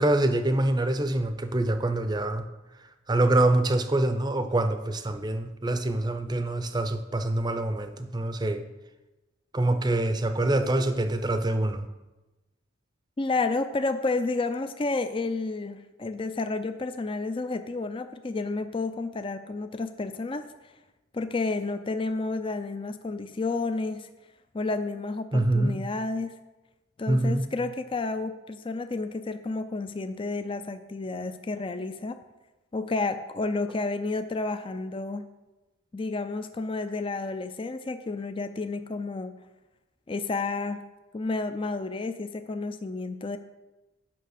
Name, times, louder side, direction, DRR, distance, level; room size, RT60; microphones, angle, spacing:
voice 1, 0.0-2.5 3.1-8.6 9.5-11.9 25.3-25.8 27.1-27.4, right 1 dB, 20° right, 9 dB, 0.6 m, -25 dB
voice 2, 13.2-20.5 21.1-24.1 24.5-26.3 27.0-32.2 32.7-35.3 35.9-39.3 40.1-40.8 41.1-43.4, left 3 dB, 25° left, 9 dB, 0.4 m, -31 dB
9.2 x 5.8 x 6.5 m, 1.1 s
head